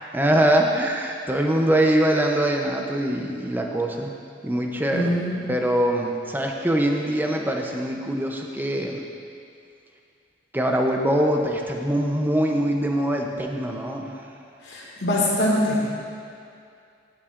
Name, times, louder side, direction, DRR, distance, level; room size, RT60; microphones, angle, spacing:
voice 1, 0.1-4.1 4.4-5.2 5.5-9.0 10.5-14.2, right 1 dB, 10° right, 1 dB, 0.6 m, -23 dB
voice 2, 4.9-5.4 14.6-15.8, left 1 dB, 60° left, -4 dB, 2.0 m, -23 dB
12.5 x 8.7 x 2.5 m, 2.4 s
head